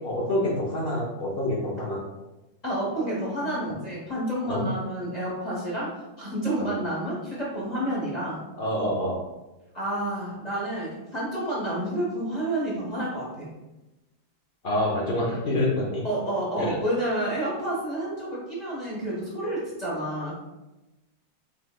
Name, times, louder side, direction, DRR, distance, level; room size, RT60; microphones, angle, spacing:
voice 1, 0.0-2.0 4.4-4.6 6.6-6.7 8.6-9.2 14.6-16.0 16.6-16.7, left 1 dB, 70° left, -4 dB, 0.5 m, -27 dB
voice 2, 2.6-8.4 9.7-13.5 16.0-20.3, right 1 dB, 35° left, -6 dB, 0.7 m, -29 dB
5.4 x 3.2 x 2.2 m, 1.0 s
omnidirectional pair, 2.0 m